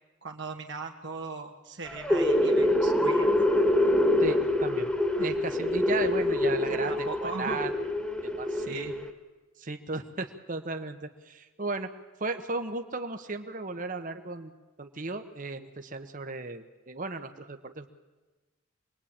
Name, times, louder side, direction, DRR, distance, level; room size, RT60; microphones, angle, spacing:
voice 1, 0.2-3.3 5.2-5.3 6.9-7.6 8.5-8.9, right 3 dB, 60° right, 2 dB, 1.6 m, -39 dB
sound 1, 1.9-9.1, left 1 dB, 5° left, 1.7 m, -25 dB
voice 2, 4.2-4.9 5.2-7.7 8.2-8.9 9.6-11.9 12.2-14.5 14.8-17.9, right 3 dB, 40° right, 6 dB, 1.2 m, -35 dB
25.5 x 21.0 x 8.8 m, 1.2 s
head